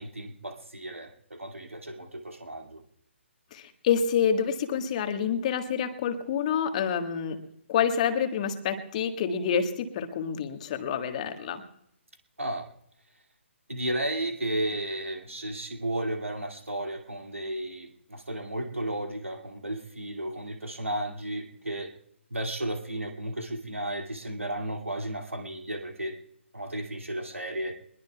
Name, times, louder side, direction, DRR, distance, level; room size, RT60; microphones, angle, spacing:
voice 1, 0.0-2.8 12.4-12.7 13.7-21.9 22.3-26.2 26.5-27.8, right 1 dB, 80° right, 4 dB, 2.4 m, -33 dB
voice 2, 3.5-7.4 7.7-11.6, left 7 dB, 35° left, 7 dB, 1.6 m, -27 dB
22.5 x 21.5 x 2.3 m, 0.74 s
figure-of-eight pair, 135°, 7 cm